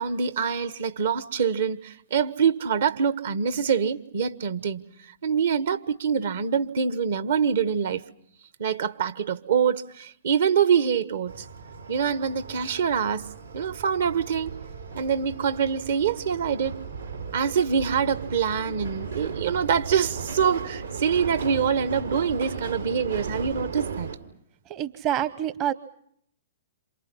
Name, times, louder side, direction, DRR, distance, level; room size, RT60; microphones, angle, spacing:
voice 1, 0.0-4.8 5.2-8.0 8.6-11.4 11.9-13.3 13.5-14.5 14.9-16.8 17.3-24.1, right 7 dB, 65° right, 1.4 m, -25 dB
sound 1, 11.3-24.2, right 5 dB, 85° right, 4.7 m, -36 dB
voice 2, 24.7-25.7, right 11 dB, 30° right, 0.9 m, -27 dB
28.5 x 27.0 x 5.7 m
figure-of-eight pair, 115°, 0 cm